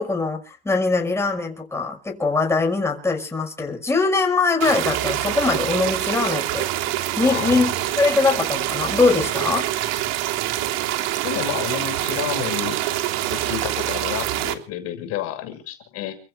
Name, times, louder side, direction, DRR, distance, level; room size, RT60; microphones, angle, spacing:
voice 1, 0.0-6.7 7.2-9.7, left 3 dB, 10° left, 6.2 m, -22 dB
sound 1, 4.6-14.5, right 14 dB, 55° right, 3.6 m, -25 dB
voice 2, 7.2-7.7 11.2-12.8 13.3-16.2, left 11 dB, 50° left, 6.4 m, -30 dB
30.0 x 15.5 x 2.5 m
supercardioid pair, 135°, 31 cm